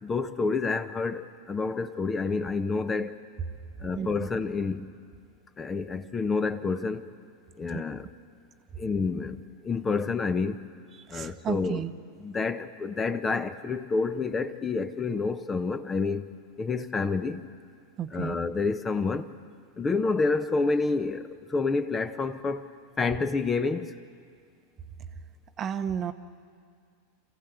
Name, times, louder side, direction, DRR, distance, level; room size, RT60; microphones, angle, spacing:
voice 1, 0.0-3.2 3.8-4.9 5.6-7.1 7.6-8.1 8.8-10.7 11.1-11.9 12.2-16.3 16.6-17.5 18.1-19.3 19.8-22.7 23.0-23.9, left 4 dB, 20° left, 1.0 m, -29 dB
voice 2, 11.1-11.9 18.0-18.4 25.6-26.1, right 8 dB, 35° right, 1.0 m, -32 dB
28.5 x 15.0 x 8.1 m
hypercardioid pair, 90°, 0 cm